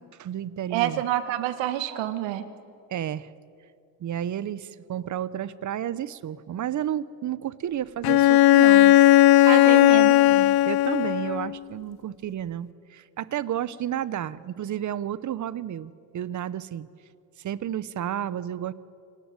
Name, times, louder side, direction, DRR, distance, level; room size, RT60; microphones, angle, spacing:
voice 1, 0.0-1.0 2.9-3.3 4.0-9.0 10.2-16.9 17.4-18.7, right 10 dB, 40° right, 18 dB, 0.8 m, -32 dB
voice 2, 0.7-2.5 9.4-10.2, right 13 dB, 90° right, 11 dB, 1.7 m, -27 dB
Bowed string instrument, 8.0-11.5, left 14 dB, 60° left, 0.6 m, -16 dB
27.0 x 18.0 x 9.0 m, 2.4 s
cardioid pair, 110°, 43 cm